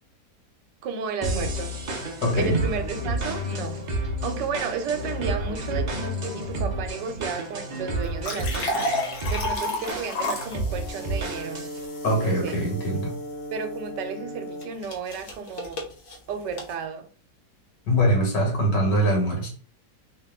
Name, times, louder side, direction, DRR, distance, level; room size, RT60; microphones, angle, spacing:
voice 1, 0.8-1.8 2.3-8.9 9.3-11.7 12.2-12.6 13.5-15.9 16.3-17.1, right 5 dB, 85° right, 1.3 m, -33 dB
sound 1, 1.2-11.8, right 1 dB, 65° right, 0.4 m, -31 dB
voice 2, 2.2-2.6 12.0-13.1 17.9-19.5, equal, 85° left, 2.2 m, -22 dB
sound 2, 8.0-13.1 14.6-16.7, left 2 dB, 50° left, 1.0 m, -32 dB
Brass instrument, 10.6-14.8, equal, 15° right, 0.9 m, -37 dB
3.5 x 2.9 x 3.6 m
omnidirectional pair, 1.9 m